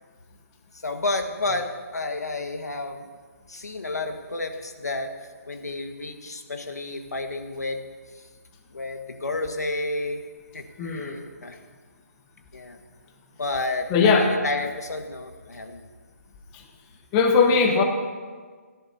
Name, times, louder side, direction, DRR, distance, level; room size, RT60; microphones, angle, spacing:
voice 1, 0.8-3.1 3.5-5.1 5.5-7.8 8.7-10.2 10.5-11.6 12.5-12.8 13.4-15.8, left 2 dB, 90° left, 5 dB, 1.6 m, -31 dB
voice 2, 10.8-11.2 13.9-14.3 17.1-17.8, left 5 dB, 20° left, 3 dB, 1.2 m, -19 dB
28.0 x 11.0 x 2.8 m, 1.5 s
hypercardioid pair, 155°, 9 cm